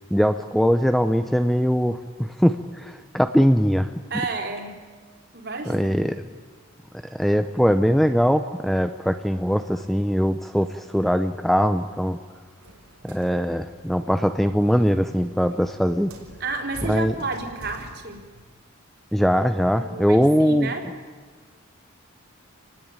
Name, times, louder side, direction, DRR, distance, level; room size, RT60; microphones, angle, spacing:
voice 1, 0.1-3.9 5.7-6.2 7.0-12.2 13.0-16.1 16.8-17.1 19.1-20.7, equal, ahead, 9 dB, 0.6 m, -21 dB
voice 2, 4.1-4.8 5.3-5.9 16.4-18.3 19.8-20.9, right 3 dB, 50° right, 3 dB, 3.9 m, -31 dB
sound 1, 12.6-18.4, right 1 dB, 75° right, 4.8 m, -45 dB
28.5 x 19.5 x 8.9 m, 1.5 s
head